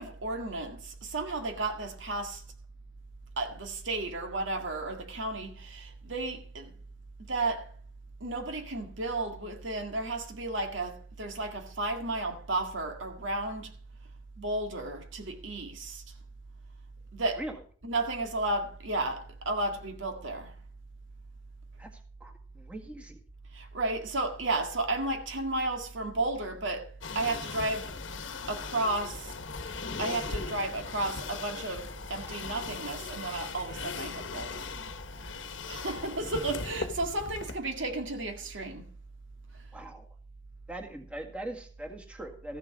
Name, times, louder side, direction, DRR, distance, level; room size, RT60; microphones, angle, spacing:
voice 1, 0.0-2.4 3.4-6.7 7.2-7.7 8.2-13.7 14.4-16.0 17.1-17.4 17.8-20.6 23.5-28.0 28.5-29.3 30.0-34.7 35.7-38.9, right 2 dB, 85° right, 2.0 m, -33 dB
voice 2, 22.2-23.2 35.9-36.1 39.7-40.1 40.7-42.6, right 1 dB, 5° right, 1.8 m, -41 dB
sound 1, 27.0-37.5, left 4 dB, 80° left, 1.1 m, -39 dB
14.5 x 7.2 x 6.0 m
head